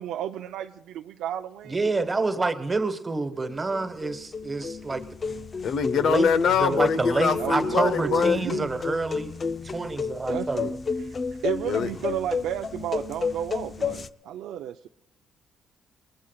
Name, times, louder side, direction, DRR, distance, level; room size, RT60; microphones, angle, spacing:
voice 1, 0.0-1.8 7.4-8.7 10.3-10.7 11.1-14.9, right 11 dB, 85° right, 0.5 m, -33 dB
voice 2, 1.7-5.1 5.9-6.3 6.6-9.3 9.6-10.7, right 3 dB, 25° right, 1.4 m, -28 dB
sound 1, 3.4-14.1, left 5 dB, 40° left, 0.5 m, -32 dB
voice 3, 5.6-8.5 11.6-11.9, left 6 dB, 70° left, 0.8 m, -23 dB
27.5 x 20.0 x 2.3 m
cardioid pair, 90°, 0 cm